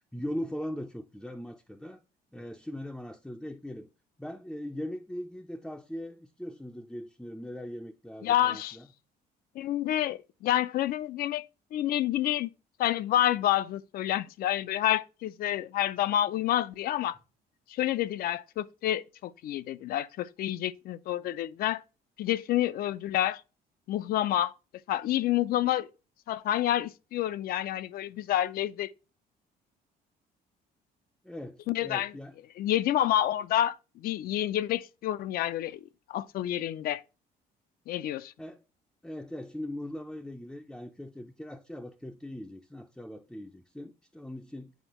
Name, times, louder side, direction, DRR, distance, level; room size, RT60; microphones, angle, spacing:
voice 1, 0.1-2.0 2.3-3.9 4.2-8.9 31.2-32.3 38.4-38.6 39.0-44.7, left 1 dB, ahead, 0.4 m, -40 dB
voice 2, 8.2-8.8 9.6-11.5 11.7-12.5 12.8-17.2 17.7-21.8 22.2-23.4 23.9-24.5 24.9-25.9 26.3-28.9 31.7-32.1 32.6-35.8 36.1-37.0 37.9-38.3, left 12 dB, 60° left, 0.4 m, -28 dB
8.0 x 4.4 x 2.9 m
cardioid pair, 110°, 17 cm